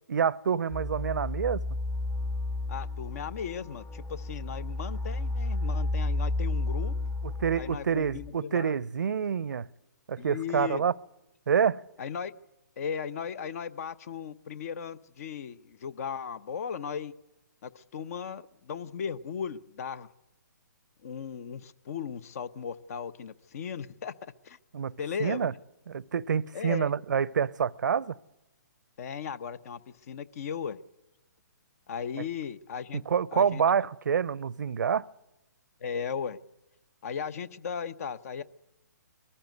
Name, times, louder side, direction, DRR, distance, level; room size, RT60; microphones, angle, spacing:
voice 1, 0.1-1.6 7.2-9.7 10.1-10.9 11.5-11.8 24.7-25.5 25.9-28.1 33.1-35.1, right 7 dB, 70° right, 0.6 m, -27 dB
sound 1, 0.7-8.3, left 2 dB, 15° left, 0.8 m, -32 dB
voice 2, 2.7-6.9 7.6-8.7 10.2-10.8 12.0-12.3 12.8-17.1 17.6-20.1 21.0-24.1 24.4-24.6 25.0-25.5 26.5-26.9 29.0-29.8 30.1-30.8 31.9-33.0 33.3-33.6 35.8-36.4 37.0-38.4, left 7 dB, 50° left, 0.9 m, -36 dB
22.0 x 14.5 x 9.4 m
hypercardioid pair, 140°, 10 cm